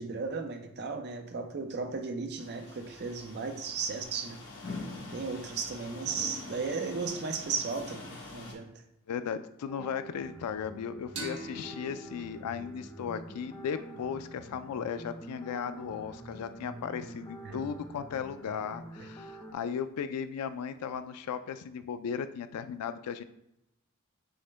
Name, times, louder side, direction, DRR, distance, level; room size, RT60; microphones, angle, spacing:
voice 1, 0.0-4.4 5.1-8.7 17.4-17.6, right 4 dB, 50° right, 5 dB, 0.5 m, -35 dB
sound 1, 2.4-8.5, left 3 dB, 55° left, 1.0 m, -44 dB
voice 2, 9.1-23.2, left 7 dB, 85° left, 12 dB, 0.3 m, -36 dB
sound 2, 9.7-19.5, right 1 dB, 20° left, 0.5 m, -47 dB
sound 3, 11.2-14.5, right 3 dB, 80° right, 1.1 m, -45 dB
6.2 x 2.1 x 3.3 m, 0.82 s
head